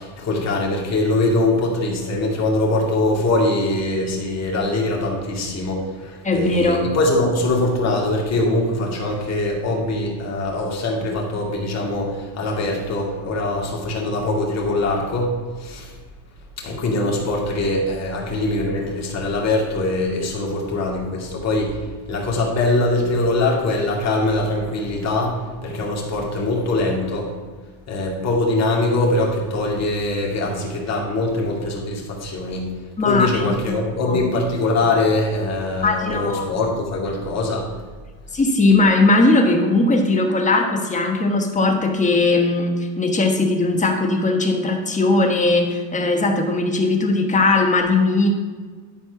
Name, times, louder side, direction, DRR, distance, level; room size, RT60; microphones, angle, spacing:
voice 1, 0.0-15.9 16.6-21.8 22.1-27.3 27.9-32.7 33.0-37.7, left 2 dB, 30° left, -2 dB, 2.3 m, -22 dB
voice 2, 6.2-6.8 33.0-33.8 34.1-34.2 35.8-36.5 38.3-48.3, left 2 dB, 15° left, 3 dB, 1.2 m, -19 dB
11.0 x 4.4 x 5.9 m, 1.4 s
cardioid pair, 135°, 49 cm